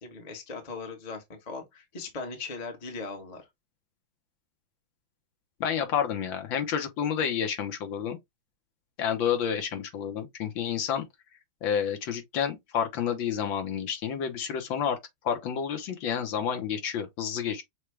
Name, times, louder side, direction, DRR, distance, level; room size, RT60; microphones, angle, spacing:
voice 1, 0.0-3.5, left 4 dB, 25° left, 0.9 m, -39 dB
voice 2, 5.6-8.2 9.0-11.1 11.6-15.0 15.2-17.6, left 8 dB, 70° left, 1.6 m, -29 dB
6.3 x 2.2 x 3.3 m
omnidirectional pair, 2.2 m